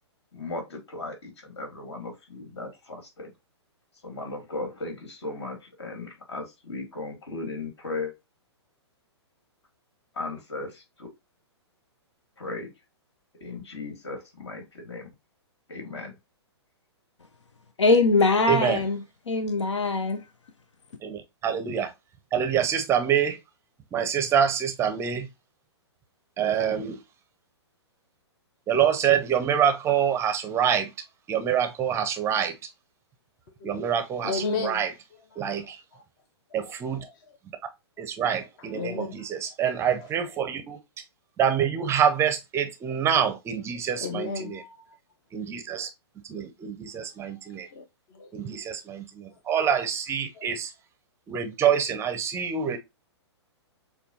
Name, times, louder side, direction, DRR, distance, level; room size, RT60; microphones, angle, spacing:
voice 1, 0.3-3.3 4.0-8.1 10.1-11.1 12.4-12.7 13.4-15.1 15.7-16.1, left 3 dB, 65° left, 2.1 m, -36 dB
voice 2, 17.8-19.0 19.3-20.2, left 3 dB, 85° left, 0.5 m, -22 dB
voice 3, 18.5-18.8 21.0-21.9 22.3-23.4 23.9-25.3 26.4-27.0 28.7-30.9 31.3-32.5 33.6-34.9 35.4-35.8 36.5-37.0 38.0-40.8 41.4-44.6 45.3-45.9 46.3-47.7 48.3-50.7 51.3-52.8, right 8 dB, 20° right, 0.5 m, -26 dB
voice 4, 34.2-34.8 35.3-36.0 36.5-37.4 38.6-39.3 39.9-40.4 42.9-43.0 44.0-45.0 47.5-48.6 49.3-49.7 50.3-50.5, left 4 dB, 45° left, 0.7 m, -36 dB
6.7 x 2.3 x 2.7 m
hypercardioid pair, 120°, 15 cm